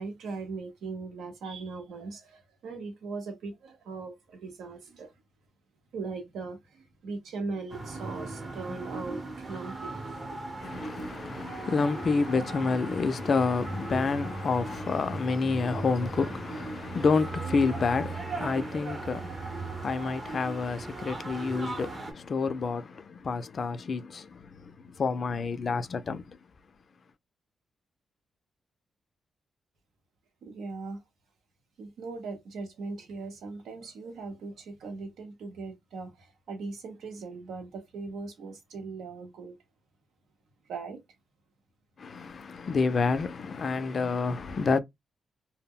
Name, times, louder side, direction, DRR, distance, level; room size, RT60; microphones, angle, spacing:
voice 1, 0.0-5.1 5.9-10.4 30.4-31.0 31.8-39.5 40.7-41.0, right 4 dB, 90° right, 0.8 m, -39 dB
sound 1, 7.7-22.1, right 3 dB, 35° right, 0.7 m, -38 dB
voice 2, 10.6-26.4 42.0-44.8, left 4 dB, 50° left, 0.4 m, -29 dB
2.2 x 2.0 x 3.5 m
cardioid pair, 90°, 0 cm